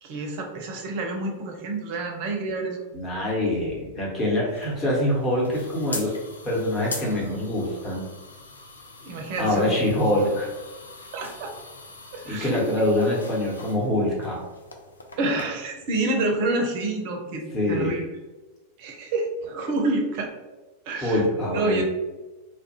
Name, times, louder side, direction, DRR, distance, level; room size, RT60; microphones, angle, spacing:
voice 1, 0.0-2.8 9.0-9.8 11.1-11.5 12.1-12.6 15.2-18.0 18.8-20.3 20.9-21.2 21.5-21.8, right 2 dB, 45° right, 2 dB, 0.5 m, -28 dB
voice 2, 2.9-6.1 6.4-8.0 9.4-10.5 12.2-14.4 17.5-18.0 21.0-21.8, left 1 dB, 20° left, -4 dB, 0.9 m, -24 dB
sound 1, 4.5-15.4, left 3 dB, 75° left, 0.3 m, -41 dB
2.3 x 2.0 x 2.9 m, 1.1 s
figure-of-eight pair, 90°, 0 cm